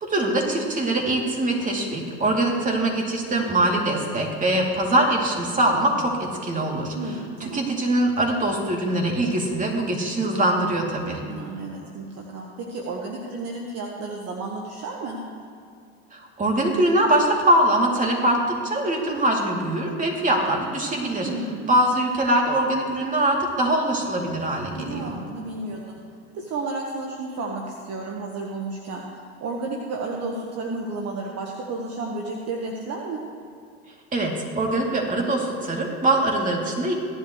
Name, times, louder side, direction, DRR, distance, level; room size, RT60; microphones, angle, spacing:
voice 1, 0.0-6.9 7.5-11.2 16.4-21.3 21.7-25.2 34.1-36.9, right 1 dB, 25° right, -1 dB, 3.1 m, -22 dB
voice 2, 6.9-7.7 11.2-15.2 21.2-21.8 24.7-26.0 26.3-29.0 29.4-33.2, right 3 dB, 50° right, -1 dB, 1.5 m, -32 dB
16.5 x 11.0 x 3.3 m, 2.5 s
hypercardioid pair, 85°, 33 cm